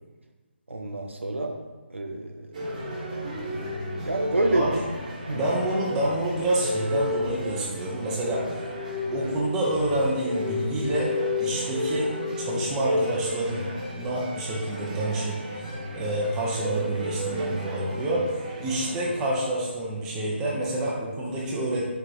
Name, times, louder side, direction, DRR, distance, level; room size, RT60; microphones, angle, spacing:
voice 1, 0.7-2.6 4.1-4.7 5.3-5.4, right 2 dB, 80° right, 2 dB, 0.6 m, -28 dB
sound 1, 2.5-19.3, left 1 dB, 40° right, 1.1 m, -32 dB
voice 2, 5.3-8.4 9.1-11.1 11.4-12.1 12.4-15.4 15.9-18.2 18.6-21.9, right 1 dB, 10° right, -6 dB, 0.6 m, -28 dB
4.7 x 2.3 x 4.8 m, 1.2 s
figure-of-eight pair, 145°, 7 cm